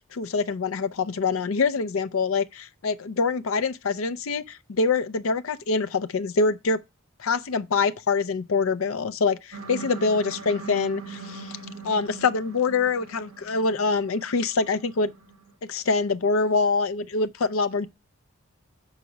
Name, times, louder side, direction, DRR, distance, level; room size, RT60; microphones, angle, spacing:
voice 1, 0.1-6.8 7.2-11.6 11.8-15.1 15.7-17.9, left 4 dB, 75° left, 0.5 m, -25 dB
sound 1, 9.5-15.5, right 3 dB, 70° right, 1.1 m, -42 dB
5.8 x 4.1 x 6.1 m
head